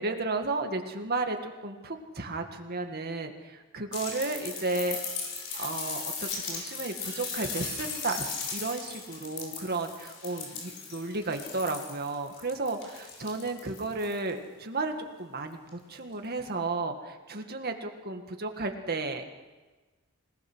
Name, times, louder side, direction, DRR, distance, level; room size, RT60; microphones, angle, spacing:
voice 1, 0.0-5.0 5.5-19.3, right 3 dB, 50° right, 5 dB, 2.0 m, -33 dB
sound 1, 3.9-14.3 15.7-15.8, left 5 dB, 60° left, 5.5 m, -38 dB
26.5 x 18.5 x 6.4 m, 1.3 s
head